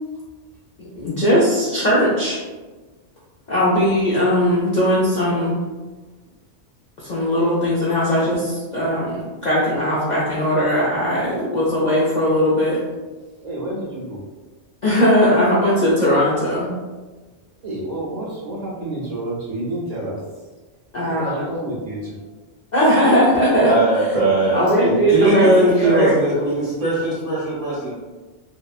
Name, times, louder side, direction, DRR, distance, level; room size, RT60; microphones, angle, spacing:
voice 1, 0.8-2.4 3.5-5.6 7.0-12.8 14.8-16.7 20.9-21.4 22.7-23.7 24.5-26.2, equal, 60° left, -7 dB, 0.5 m, -18 dB
voice 2, 13.4-14.2 17.6-20.2 21.2-22.2 24.7-24.8, right 1 dB, 90° right, -6 dB, 0.3 m, -29 dB
voice 3, 23.6-27.9, right 1 dB, 35° right, -7 dB, 0.8 m, -19 dB
2.8 x 2.1 x 2.3 m, 1.3 s
omnidirectional pair, 1.3 m